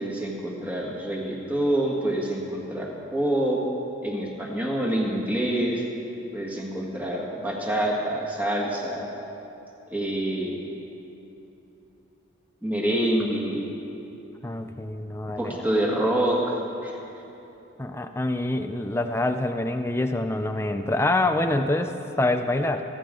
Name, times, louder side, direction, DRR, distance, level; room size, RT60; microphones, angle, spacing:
voice 1, 0.0-3.6 4.0-5.8 6.3-9.1 9.9-10.6 12.6-13.7 15.4-16.9, right 1 dB, 10° right, -3 dB, 1.9 m, -26 dB
voice 2, 14.4-15.6 17.8-22.8, left 2 dB, 15° left, 6 dB, 0.4 m, -26 dB
26.0 x 11.5 x 3.8 m, 2.9 s
head